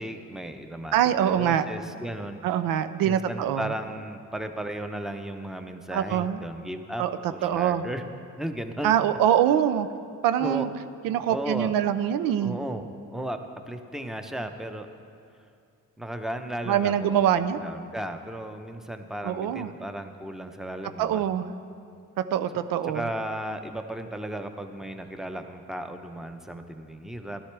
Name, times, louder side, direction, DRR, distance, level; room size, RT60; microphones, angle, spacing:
voice 1, 0.0-1.0 1.2-2.4 3.0-7.0 7.3-8.0 8.4-8.9 10.4-10.7 11.3-11.7 12.4-12.9 13.1-13.4 13.7-14.9 16.0-21.2 22.9-27.4, right 1 dB, ahead, 7 dB, 0.8 m, -35 dB
voice 2, 0.9-1.6 2.4-3.7 5.9-6.4 7.0-7.8 8.8-9.9 10.2-10.7 11.0-12.6 16.7-17.6 19.2-19.7 21.0-21.4 22.3-23.0, right 10 dB, 85° right, 11 dB, 0.5 m, -24 dB
13.0 x 11.0 x 3.4 m, 2.5 s
supercardioid pair, 60°, 33 cm